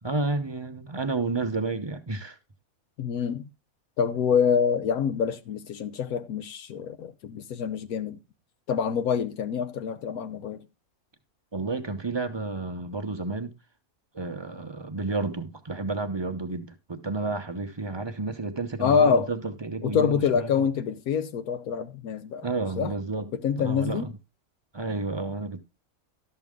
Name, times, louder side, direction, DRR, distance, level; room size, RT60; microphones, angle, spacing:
voice 1, 0.0-2.4 11.5-13.5 14.1-20.5 22.4-23.3 23.6-24.1 24.7-25.6, right 3 dB, 30° right, 0.5 m, -31 dB
voice 2, 3.0-3.5 4.0-8.2 8.7-10.6 18.8-19.3 19.8-22.5 22.8-22.9 23.3-24.1, left 7 dB, 80° left, 1.2 m, -26 dB
12.0 x 6.7 x 3.6 m
omnidirectional pair, 1.5 m